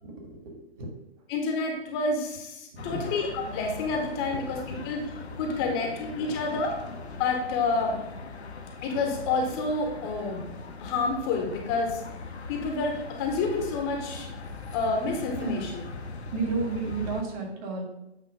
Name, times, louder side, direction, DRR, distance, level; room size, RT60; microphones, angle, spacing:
voice 1, 0.0-0.9 2.7-3.0 5.6-5.7 15.4-15.6 16.3-17.8, right 4 dB, 35° right, 0 dB, 1.8 m, -32 dB
voice 2, 1.3-5.0 5.4-6.8 7.2-8.0 8.8-10.5 10.8-12.0 12.5-14.3 14.7-15.7, left 3 dB, 25° left, 2 dB, 0.9 m, -29 dB
sound 1, 2.8-17.2, left 3 dB, 80° left, 0.9 m, -40 dB
8.4 x 2.9 x 5.2 m, 0.89 s
figure-of-eight pair, 135°, 32 cm